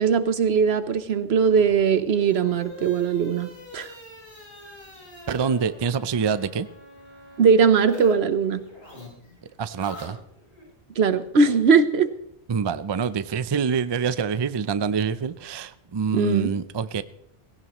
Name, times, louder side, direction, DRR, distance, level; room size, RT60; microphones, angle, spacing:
voice 1, 0.0-3.9 7.4-8.6 11.0-12.1 16.1-16.5, right 5 dB, 75° right, 12 dB, 1.1 m, -20 dB
sound 1, 1.5-8.1 8.4-10.7, left 1 dB, 70° left, 5.1 m, -44 dB
voice 2, 5.3-6.7 9.6-10.2 12.5-17.0, right 6 dB, 40° right, 14 dB, 0.4 m, -26 dB
17.5 x 17.0 x 3.0 m, 0.72 s
omnidirectional pair, 1.1 m